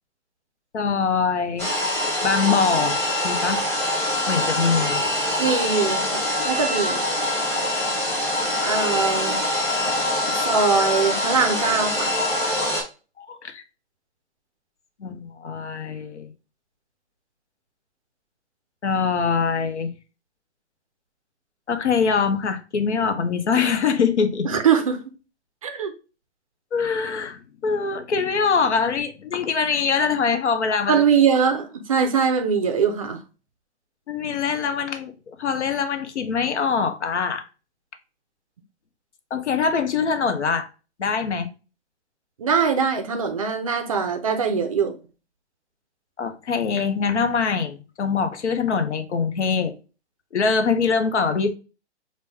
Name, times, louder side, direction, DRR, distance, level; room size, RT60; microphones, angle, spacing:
voice 1, 0.7-1.7 2.2-3.6 4.3-5.1 9.8-10.1 13.2-13.6 15.0-16.3 18.8-19.9 21.7-24.5 26.7-31.0 34.1-37.5 39.3-40.7 41.0-41.5 46.2-49.7 50.3-51.5, left 5 dB, 80° left, 0.9 m, -23 dB
sound 1, 1.6-12.8, left 1 dB, 5° left, 0.9 m, -24 dB
voice 2, 5.4-7.0 8.6-9.4 10.3-12.1 24.4-25.0 25.6-25.9 30.9-33.2 42.4-44.9, right 6 dB, 30° right, 0.4 m, -22 dB
5.2 x 2.2 x 3.3 m
hypercardioid pair, 145°, 34 cm